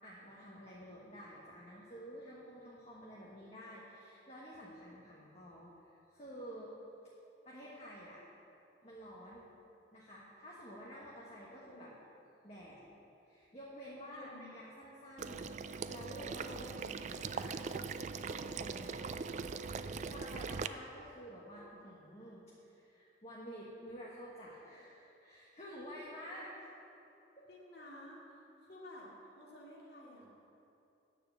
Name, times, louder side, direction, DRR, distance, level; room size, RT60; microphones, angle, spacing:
voice 1, 0.0-6.7 7.4-8.2 8.8-9.5 9.9-11.9 12.4-12.8 13.3-17.9 18.3-26.5 27.4-27.5, equal, 35° left, -6 dB, 1.4 m, -50 dB
voice 2, 11.5-12.0 14.1-14.6 27.5-30.3, left 1 dB, 60° left, -4 dB, 2.3 m, -53 dB
Water / Liquid, 15.2-20.7, right 5 dB, 40° right, 0.3 m, -41 dB
9.9 x 6.9 x 7.8 m, 2.8 s
head